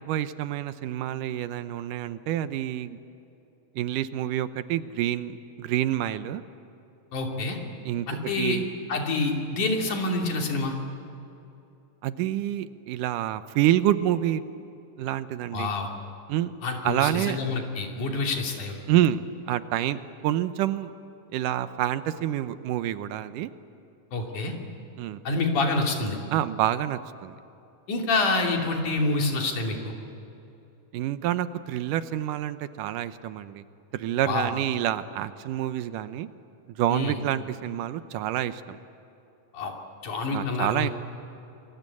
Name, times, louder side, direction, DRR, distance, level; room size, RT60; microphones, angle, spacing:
voice 1, 0.1-3.0 3.8-6.4 7.9-8.1 8.4-8.7 12.0-14.4 15.0-15.7 16.3-16.5 16.8-17.4 18.9-20.9 21.3-23.5 25.0-25.2 26.3-27.4 30.9-33.6 33.9-36.3 36.7-38.8 40.3-40.9, right 12 dB, 80° right, 12 dB, 2.4 m, -27 dB
voice 2, 7.1-7.6 8.1-8.6 8.9-10.8 15.5-15.9 16.6-18.8 24.1-24.6 25.2-26.2 27.9-29.9 34.2-34.5 36.9-37.2 39.5-39.7 40.0-40.9, left 3 dB, 70° left, 1 dB, 4.4 m, -27 dB
28.5 x 22.0 x 8.5 m, 2.9 s
omnidirectional pair, 3.7 m